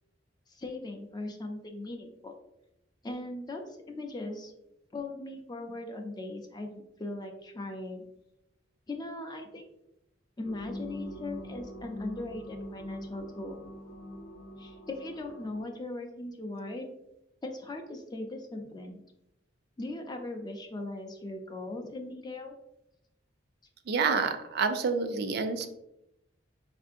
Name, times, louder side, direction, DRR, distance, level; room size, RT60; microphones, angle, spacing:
voice 1, 0.5-2.3 3.0-4.5 4.9-8.0 8.9-9.7 10.4-13.6 14.6-16.9 17.4-19.0 19.8-22.6, left 2 dB, 20° left, 4 dB, 0.4 m, -39 dB
sound 1, 10.4-15.6, equal, 80° left, 0.6 m, -43 dB
voice 2, 23.9-25.7, right 5 dB, 55° right, 7 dB, 0.3 m, -28 dB
4.4 x 2.5 x 2.5 m, 0.86 s
head